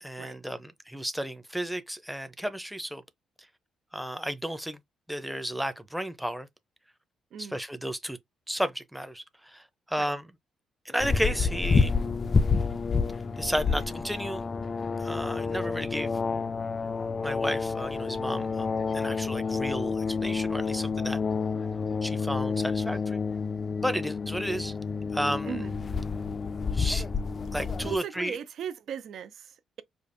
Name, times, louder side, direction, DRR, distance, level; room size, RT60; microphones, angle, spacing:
voice 1, 0.0-3.0 3.9-4.8 5.1-6.5 7.4-8.2 8.5-10.3 10.8-12.0 13.4-14.4 15.0-16.2 17.2-21.2 22.0-23.2 23.8-24.7 25.1-25.6 26.7-27.1 27.5-28.4, equal, 5° right, 0.6 m, -33 dB
sound 1, 11.0-28.0, left 5 dB, 35° left, 0.3 m, -29 dB
voice 2, 27.8-29.8, right 8 dB, 70° right, 0.5 m, -38 dB
5.0 x 2.4 x 2.6 m
cardioid pair, 90°, 0 cm